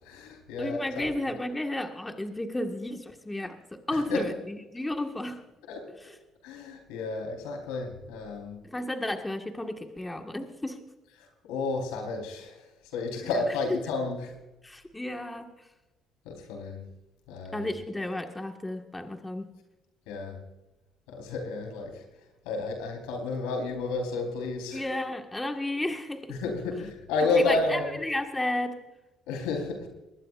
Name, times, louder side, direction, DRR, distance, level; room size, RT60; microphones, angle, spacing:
voice 1, 0.0-1.1 3.9-4.3 5.7-5.9 6.4-8.6 11.5-12.6 12.9-14.3 16.3-16.8 17.3-17.7 20.1-20.4 21.1-22.0 22.4-24.9 26.3-28.0 29.3-29.9, left 3 dB, 90° left, 2 dB, 4.2 m, -31 dB
voice 2, 0.6-5.4 6.0-6.2 8.6-10.8 13.2-13.6 14.6-15.5 17.5-19.5 24.7-26.4 27.3-28.8, left 1 dB, 15° left, 4 dB, 1.7 m, -33 dB
21.0 x 19.5 x 2.5 m, 1.0 s
supercardioid pair, 80°, 0 cm